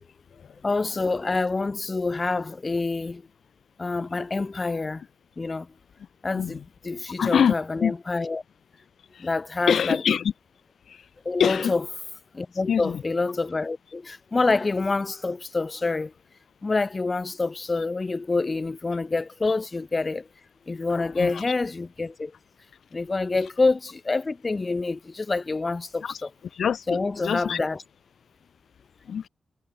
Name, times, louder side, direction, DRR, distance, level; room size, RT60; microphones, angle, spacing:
voice 1, 0.6-3.2 3.8-5.0 5.4-5.7 6.2-8.4 9.2-10.0 11.2-11.8 12.3-16.1 16.6-20.3 20.7-22.3 22.9-26.3 26.9-27.8, left 3 dB, 35° left, 1.0 m, -27 dB
voice 2, 7.2-7.9 9.1-9.3 9.7-10.3 10.9-11.0 11.4-11.7 12.7-13.0 20.9-21.4 26.0-26.2 26.5-27.6 29.1-29.3, left 7 dB, 80° left, 0.6 m, -25 dB
cardioid pair, 60°, 0 cm